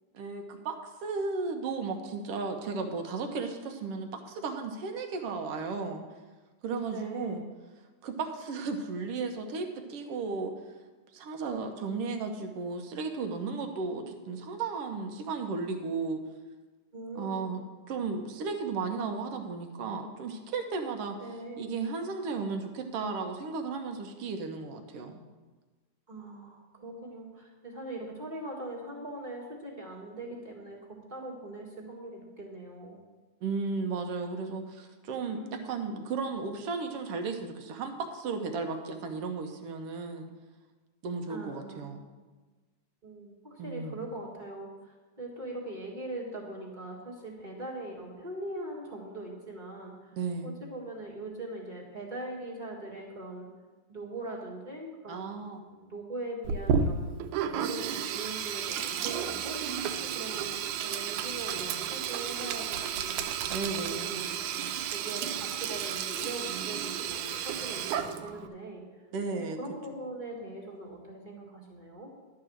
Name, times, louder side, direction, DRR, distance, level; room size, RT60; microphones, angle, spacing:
voice 1, 0.1-6.0 6.6-7.4 8.0-10.5 11.1-16.2 17.1-21.2 21.6-25.2 33.4-40.3 41.0-42.0 43.6-44.0 50.1-50.6 55.1-55.6 63.5-64.1 69.1-69.6, right 4 dB, 65° right, 5 dB, 1.6 m, -34 dB
voice 2, 6.9-7.5 16.9-17.5 21.2-21.7 26.1-33.0 35.2-35.7 41.3-42.0 43.0-50.1 50.4-53.5 53.9-55.4 55.7-57.1 57.4-63.2 63.7-68.8 69.3-72.1, right 2 dB, 20° right, -4 dB, 1.2 m, -41 dB
Sink (filling or washing), 56.4-68.5, right 7 dB, 85° right, 2.0 m, -32 dB
11.5 x 4.8 x 7.6 m, 1.3 s
omnidirectional pair, 3.3 m